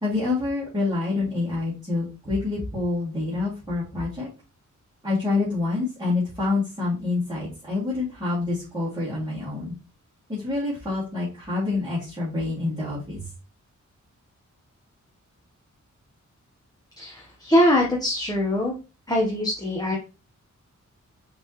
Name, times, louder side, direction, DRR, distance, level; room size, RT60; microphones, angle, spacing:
voice 1, 0.0-4.3 5.0-9.7 10.4-13.2, left 3 dB, 10° right, -11 dB, 2.4 m, -27 dB
voice 2, 17.0-18.7 19.1-20.0, left 1 dB, 15° left, -1 dB, 0.9 m, -22 dB
5.2 x 3.3 x 3.0 m, 0.32 s
wide cardioid pair, 135°, 30 cm